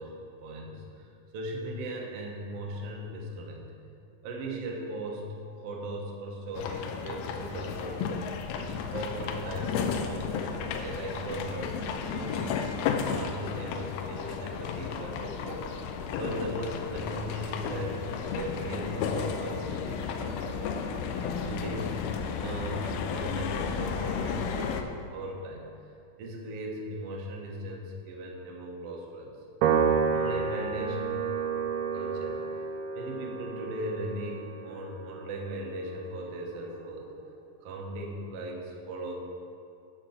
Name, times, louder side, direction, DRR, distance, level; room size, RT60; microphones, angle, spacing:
voice 1, 0.0-3.7 4.2-8.3 8.6-15.6 16.2-18.1 18.3-20.6 21.4-25.7 26.2-29.4 30.1-31.2 31.7-32.7 32.9-37.1 37.6-39.1, right 1 dB, 65° right, -1 dB, 1.5 m, -38 dB
sound 1, 6.5-24.8, left 6 dB, 85° left, 2.5 m, -33 dB
Piano, 29.6-36.2, right 6 dB, 85° right, 2.6 m, -30 dB
9.8 x 4.4 x 7.1 m, 2.7 s
omnidirectional pair, 4.3 m